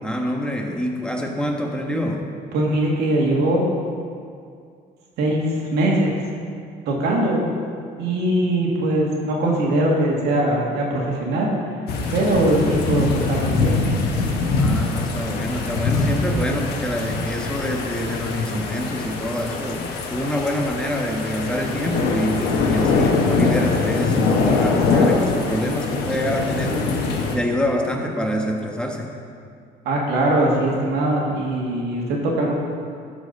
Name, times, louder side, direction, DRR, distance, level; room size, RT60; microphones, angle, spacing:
voice 1, 0.0-2.3 14.5-27.0 27.3-29.1, equal, 5° left, 1 dB, 1.2 m, -26 dB
voice 2, 2.5-3.6 5.2-6.1 6.9-7.4 8.0-11.5 12.1-13.8 29.9-32.5, right 1 dB, 80° right, -2 dB, 2.1 m, -21 dB
sound 1, 11.9-27.4, left 3 dB, 75° left, 1.2 m, -23 dB
12.5 x 5.0 x 5.3 m, 2.3 s
cardioid pair, 110°, 17 cm